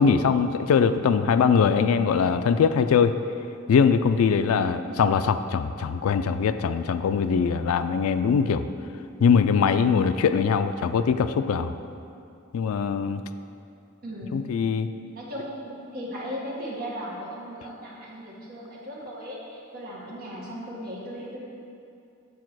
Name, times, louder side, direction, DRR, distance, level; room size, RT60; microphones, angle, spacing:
voice 1, 0.0-3.1 3.7-8.7 9.2-11.7 12.5-13.2 14.3-14.9, left 6 dB, 75° left, 9 dB, 0.3 m, -22 dB
voice 2, 14.0-14.4 15.1-21.4, equal, 45° right, -5 dB, 1.7 m, -37 dB
7.3 x 4.8 x 6.0 m, 2.6 s
head